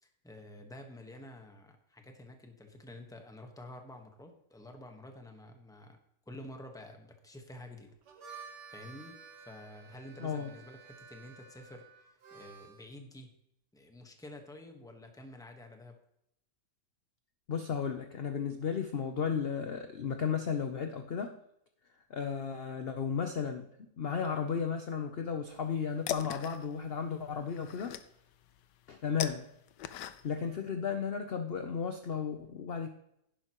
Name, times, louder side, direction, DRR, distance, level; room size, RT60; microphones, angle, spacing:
voice 1, 0.0-6.0 6.3-7.9 8.2-13.3 13.7-16.0, left 1 dB, ahead, 4 dB, 1.0 m, -50 dB
Harmonica, 7.9-12.9, right 5 dB, 75° right, 1.8 m, -52 dB
voice 2, 10.2-10.5 17.5-21.4 22.1-28.0 28.9-29.5 30.2-32.9, left 6 dB, 55° left, 6 dB, 0.7 m, -34 dB
sound 1, 25.5-30.5, left 11 dB, 85° left, 1.3 m, -41 dB
11.0 x 10.5 x 3.0 m, 0.76 s
omnidirectional pair, 1.9 m